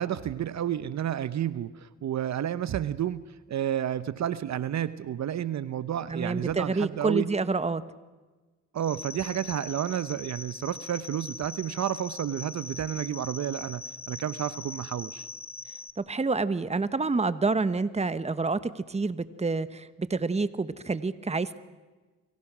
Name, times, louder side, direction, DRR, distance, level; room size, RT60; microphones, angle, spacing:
voice 1, 0.0-7.3 8.7-15.3, right 10 dB, 60° right, 14 dB, 0.9 m, -31 dB
voice 2, 6.1-7.8 16.0-21.6, right 3 dB, 20° right, 13 dB, 1.3 m, -28 dB
sound 1, 8.8-15.9, left 3 dB, 30° left, 1.5 m, -41 dB
29.5 x 24.5 x 6.2 m, 1.3 s
cardioid pair, 75°, 31 cm